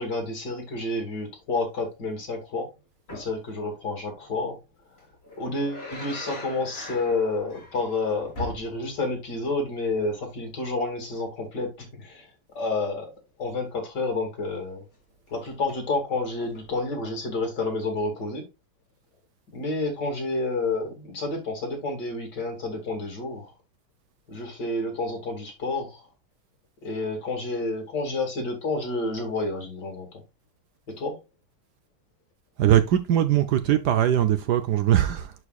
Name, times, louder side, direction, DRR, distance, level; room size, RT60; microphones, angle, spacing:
voice 1, 0.0-2.7 3.1-4.6 5.4-12.3 12.5-13.1 13.4-14.8 15.3-18.5 19.5-23.5 24.3-26.0 26.8-30.2 30.9-31.2, left 2 dB, 55° left, 3.1 m, -29 dB
sound 1, 3.1-3.4 5.0-9.1 9.5-9.6 15.3-15.8 16.4-16.8 17.7-17.8, left 1 dB, 30° left, 3.1 m, -40 dB
voice 2, 32.6-35.3, right 11 dB, 70° right, 1.1 m, -21 dB
11.0 x 4.6 x 2.4 m
omnidirectional pair, 2.2 m